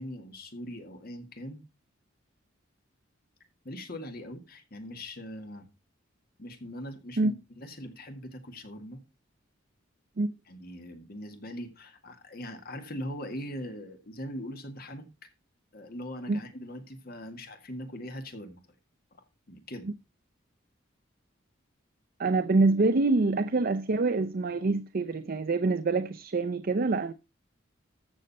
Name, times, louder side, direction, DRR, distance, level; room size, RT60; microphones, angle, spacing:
voice 1, 0.0-1.6 3.6-5.7 6.4-9.0 10.5-15.3 15.7-18.6 19.5-19.9, equal, 50° left, 1.9 m, -41 dB
voice 2, 22.2-27.1, right 3 dB, 50° right, 0.5 m, -25 dB
14.5 x 6.6 x 4.1 m
head